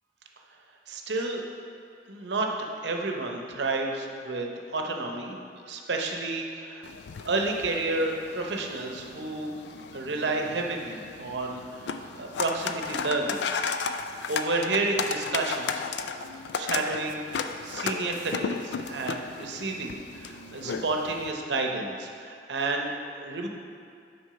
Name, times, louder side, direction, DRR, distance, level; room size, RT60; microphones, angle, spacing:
voice 1, 0.9-1.4 2.1-2.5 2.8-5.4 5.7-6.9 7.2-9.5 9.9-13.5 14.3-15.8 16.5-23.5, right 3 dB, 75° right, 2 dB, 0.8 m, -31 dB
sound 1, 6.8-21.3, left 5 dB, 70° left, 0.3 m, -35 dB
6.1 x 4.5 x 5.7 m, 2.4 s
head